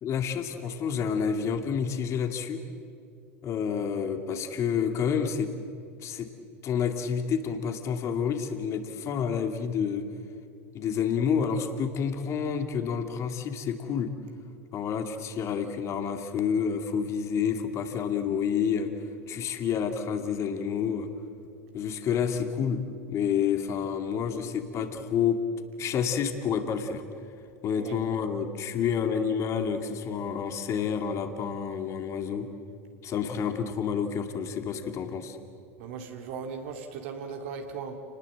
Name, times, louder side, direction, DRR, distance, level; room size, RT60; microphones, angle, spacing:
voice 1, 0.0-2.6 3.4-5.5 6.0-6.3 6.6-10.1 10.7-14.1 14.7-18.9 19.3-21.1 21.7-22.8 23.1-25.4 25.8-27.0 27.6-32.5 33.0-35.4, left 7 dB, 40° left, 7 dB, 2.4 m, -29 dB
voice 2, 35.8-38.0, right 6 dB, 60° right, 4 dB, 2.4 m, -38 dB
29.5 x 19.5 x 7.8 m, 2.4 s
figure-of-eight pair, 75°, 7 cm